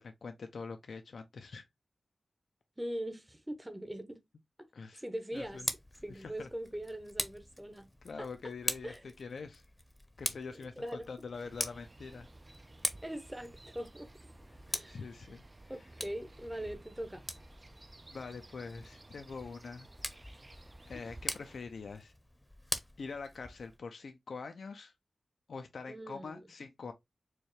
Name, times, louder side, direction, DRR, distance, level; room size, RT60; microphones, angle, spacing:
voice 1, 0.0-1.7 4.7-5.0 5.3-5.7 6.1-6.5 8.0-9.6 10.2-12.3 14.9-15.4 18.1-19.9 20.9-22.1 23.0-24.9 25.5-26.9, left 4 dB, 80° left, 0.4 m, -44 dB
voice 2, 2.8-4.2 4.9-5.7 6.0-7.9 8.2-8.5 8.8-9.1 10.6-11.1 13.0-14.1 14.7-15.0 15.7-17.2 25.9-26.4, right 1 dB, 15° right, 0.8 m, -41 dB
Tick, 5.3-23.8, left 1 dB, 20° left, 0.7 m, -43 dB
sound 1, 11.3-21.6, right 2 dB, 35° right, 0.4 m, -55 dB
4.4 x 2.3 x 3.1 m
cardioid pair, 50°, 0 cm